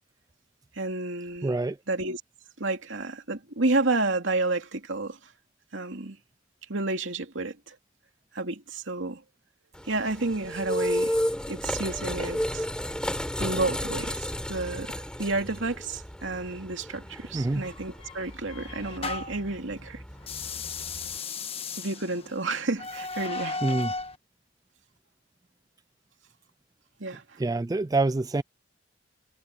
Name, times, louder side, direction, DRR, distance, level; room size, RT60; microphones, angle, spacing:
voice 1, 0.7-1.5 1.9-2.2 2.6-5.2 5.7-6.2 6.7-7.8 8.3-9.2 9.9-11.2 11.5-12.7 13.4-20.0 21.8-23.6 27.0-27.4, right 2 dB, 75° right, 2.6 m, -30 dB
voice 2, 1.4-1.8 17.3-17.7 23.6-23.9 27.4-28.4, right 2 dB, 20° right, 0.3 m, -26 dB
sound 1, 9.7-21.2, equal, 5° left, 5.3 m, -33 dB
sound 2, 17.6-19.5 20.2-24.2, left 4 dB, 30° left, 1.3 m, -36 dB
head